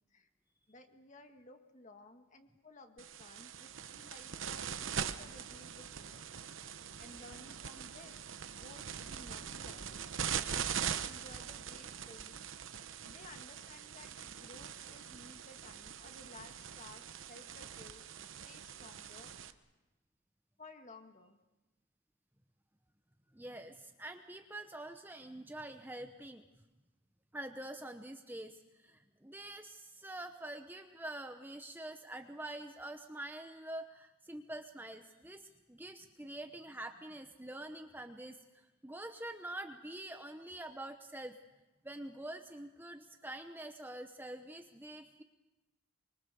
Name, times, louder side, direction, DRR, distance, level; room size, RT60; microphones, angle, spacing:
voice 1, 0.7-6.2 7.0-8.2 8.5-9.9 10.5-12.5 13.0-18.0 18.4-19.6 20.6-21.4, left 2 dB, 35° left, 5 dB, 1.9 m, -56 dB
sound 1, 3.0-19.5, right 8 dB, 65° right, 1.0 m, -42 dB
voice 2, 23.3-26.4 27.3-41.4 41.8-45.2, right 1 dB, 10° right, 6 dB, 0.9 m, -46 dB
24.5 x 24.0 x 6.9 m, 1.1 s
head